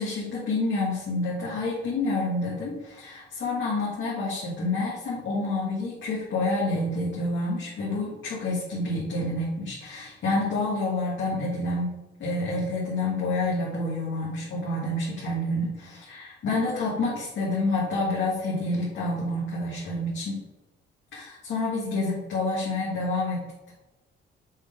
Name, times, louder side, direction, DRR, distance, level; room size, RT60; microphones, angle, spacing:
voice 1, 0.0-20.4 21.1-23.7, left 2 dB, 65° left, -7 dB, 2.5 m, -28 dB
7.2 x 3.7 x 5.3 m, 1.1 s
cardioid pair, 90°, 20 cm